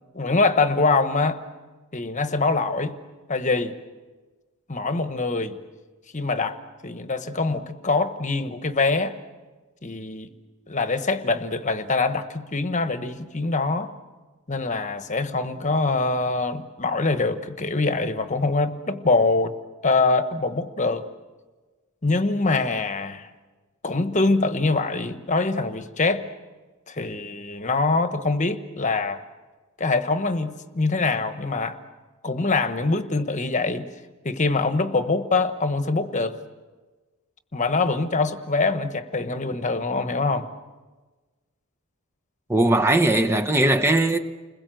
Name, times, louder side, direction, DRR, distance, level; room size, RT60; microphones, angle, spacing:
voice 1, 0.1-1.4 1.9-3.0 3.3-3.8 4.7-5.6 6.1-6.6 6.8-9.1 9.8-10.3 10.7-13.9 14.5-19.5 19.8-21.0 22.0-23.3 23.8-26.2 26.9-29.2 29.8-31.8 32.2-33.9 34.2-36.4 37.5-40.5, left 3 dB, 35° left, 1.2 m, -24 dB
voice 2, 42.5-44.2, right 1 dB, 10° right, 0.9 m, -19 dB
29.5 x 21.5 x 7.8 m
head